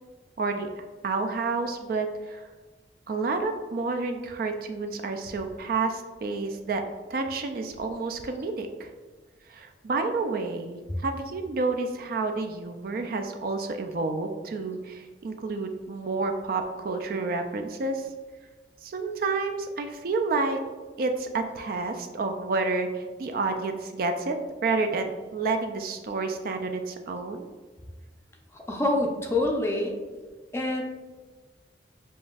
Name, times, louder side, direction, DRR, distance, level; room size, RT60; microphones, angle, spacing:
voice 1, 0.4-2.4 3.1-6.8 7.1-8.9 9.5-18.1 18.8-20.6 21.0-24.4 24.6-27.5, right 3 dB, 50° right, 6 dB, 0.3 m, -29 dB
voice 2, 28.5-30.0 30.5-30.8, left 2 dB, 15° left, 1 dB, 0.4 m, -26 dB
7.0 x 2.5 x 2.3 m, 1.3 s
head